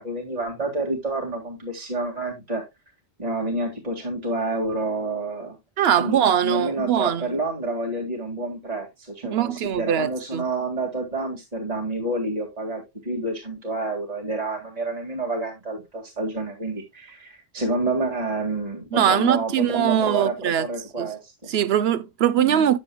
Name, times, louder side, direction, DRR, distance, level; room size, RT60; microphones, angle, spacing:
voice 1, 0.0-2.6 3.2-5.6 6.0-21.5 22.4-22.7, right 2 dB, 35° right, 2.2 m, -29 dB
voice 2, 5.8-7.3 9.2-10.4 18.9-20.7 21.0-21.1 21.5-22.8, right 9 dB, 70° right, 0.9 m, -21 dB
9.5 x 7.6 x 2.2 m
omnidirectional pair, 1.1 m